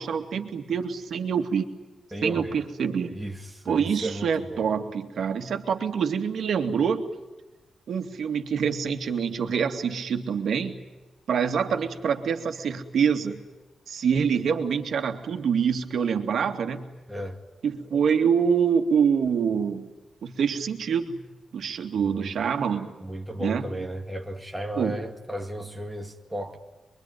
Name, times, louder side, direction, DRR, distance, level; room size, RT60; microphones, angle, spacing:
voice 1, 0.0-1.7 2.2-3.2 3.7-7.1 7.9-10.8 11.3-13.4 13.9-16.9 17.6-19.9 20.2-21.2 21.5-23.0 23.4-23.7 24.8-25.0, right 7 dB, 65° right, 2.4 m, -26 dB
voice 2, 2.1-2.6 3.1-4.6 17.1-17.4 22.0-22.3 23.0-26.6, right 1 dB, ahead, 2.1 m, -34 dB
26.5 x 23.5 x 9.4 m
wide cardioid pair, 160°, 0 cm